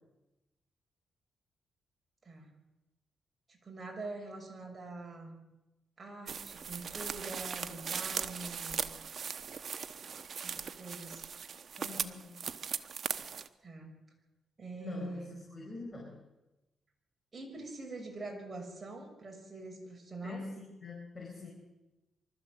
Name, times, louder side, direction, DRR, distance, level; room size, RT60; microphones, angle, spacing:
voice 1, 3.5-5.3 6.0-8.9 10.4-11.2 13.6-13.9 14.6-15.4 17.3-20.5, right 2 dB, 30° right, 2 dB, 6.5 m, -44 dB
sound 1, 6.3-13.5, right 6 dB, 55° right, 1.1 m, -39 dB
voice 2, 11.7-12.4 14.8-16.2 20.2-21.5, left 3 dB, 25° left, 0 dB, 4.7 m, -44 dB
24.0 x 13.5 x 7.8 m, 1.0 s
cardioid pair, 90°, 0 cm